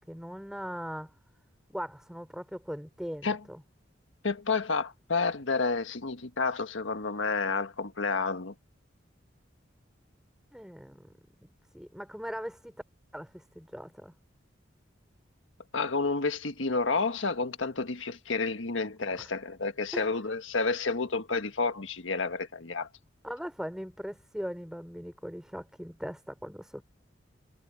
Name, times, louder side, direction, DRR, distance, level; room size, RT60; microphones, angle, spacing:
voice 1, 0.1-1.1 1.7-3.6 10.5-11.1 11.7-12.7 13.1-14.1 19.2-19.3 19.9-20.0 23.2-26.8, equal, 5° right, 4.0 m, -39 dB
voice 2, 4.2-8.5 15.7-22.9, left 4 dB, 85° left, 1.6 m, -30 dB
head